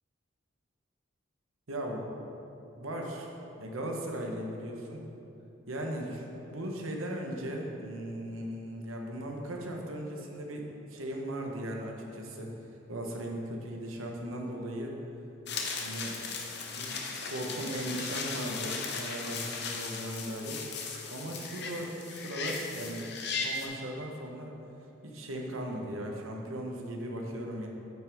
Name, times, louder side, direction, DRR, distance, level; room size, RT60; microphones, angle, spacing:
voice 1, 1.7-2.0 2.8-3.3 3.6-5.0 5.7-12.5 12.9-14.9 15.8-16.1 16.7-20.6 21.1-23.1 23.3-24.5 25.0-27.7, right 1 dB, 90° right, 1 dB, 1.0 m, -37 dB
sound 1, 15.5-23.7, left 4 dB, 55° left, 0.8 m, -37 dB
9.0 x 5.9 x 3.5 m, 2.8 s
head